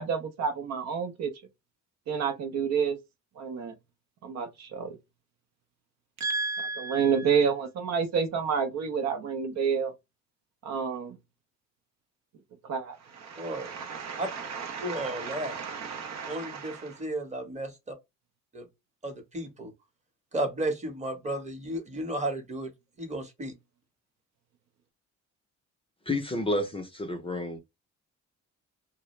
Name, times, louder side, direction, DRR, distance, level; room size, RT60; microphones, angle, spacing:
voice 1, 0.0-1.3 2.1-3.0 3.4-3.7 4.2-5.0 6.2-9.9 10.6-11.2 12.6-17.0, right 6 dB, 65° right, 0.6 m, -30 dB
voice 2, 13.4-13.7 14.2-14.3 14.8-15.5 16.3-18.0 18.5-18.7 19.0-19.7 20.3-22.7 23.0-23.5, right 1 dB, 25° right, 0.9 m, -33 dB
voice 3, 26.1-27.6, left 1 dB, 20° left, 0.5 m, -30 dB
2.3 x 2.0 x 3.0 m
cardioid pair, 90°, 30 cm